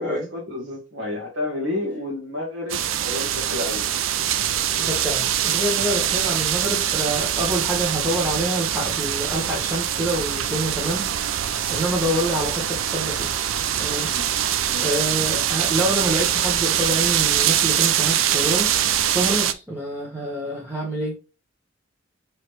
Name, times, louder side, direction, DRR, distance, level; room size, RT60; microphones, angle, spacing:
voice 1, 0.0-3.8 14.1-14.3 14.7-15.0, left 2 dB, 65° right, 1.3 m, -30 dB
sound 1, 2.7-19.5, right 10 dB, 80° right, 0.4 m, -23 dB
voice 2, 4.8-13.3 13.8-14.1 14.8-21.2, right 1 dB, 10° right, 0.9 m, -27 dB
4.7 x 3.2 x 3.0 m
head